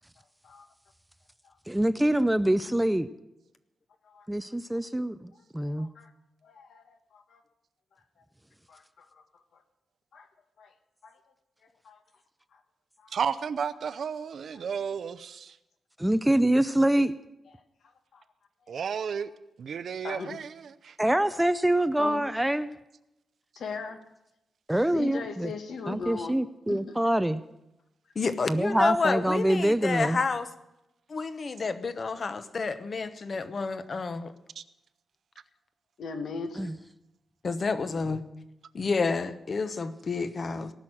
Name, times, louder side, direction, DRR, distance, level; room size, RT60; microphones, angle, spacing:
voice 1, 1.7-3.1 4.3-5.9 16.0-17.1 21.0-22.7 24.7-25.5 25.9-27.4 28.5-30.2 36.6-36.8, right 1 dB, 5° right, 0.4 m, -25 dB
voice 2, 5.8-6.1 6.4-7.4 8.7-9.2 9.5-9.6 10.1-10.3 10.6-10.7 11.0-11.2 11.8-12.0 12.5-12.6 13.0-13.2 18.1-18.2 20.0-20.4 22.0-22.2 23.5-24.0 24.9-26.3 26.7-26.9 36.0-36.7, left 5 dB, 75° left, 1.6 m, -39 dB
voice 3, 13.1-15.6 18.7-19.3 19.6-21.0 34.6-34.7, right 7 dB, 60° right, 0.6 m, -33 dB
voice 4, 28.2-30.5 31.1-34.3 37.4-38.2 38.7-40.7, left 4 dB, 35° left, 0.9 m, -29 dB
18.5 x 6.3 x 8.9 m
wide cardioid pair, 160°, 0 cm